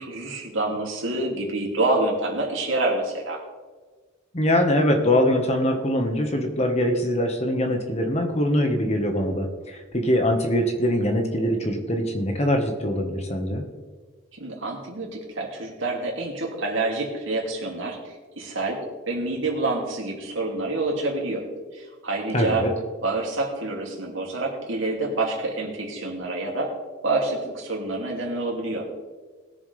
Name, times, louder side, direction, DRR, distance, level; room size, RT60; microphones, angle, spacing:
voice 1, 0.0-3.4 14.3-18.8 19.1-21.4 21.7-22.6 23.0-26.7 27.0-28.8, right 2 dB, 75° right, -1 dB, 2.8 m, -27 dB
voice 2, 4.3-13.6 22.3-22.7, equal, 30° left, 3 dB, 1.5 m, -23 dB
20.5 x 7.2 x 3.4 m, 1.4 s
head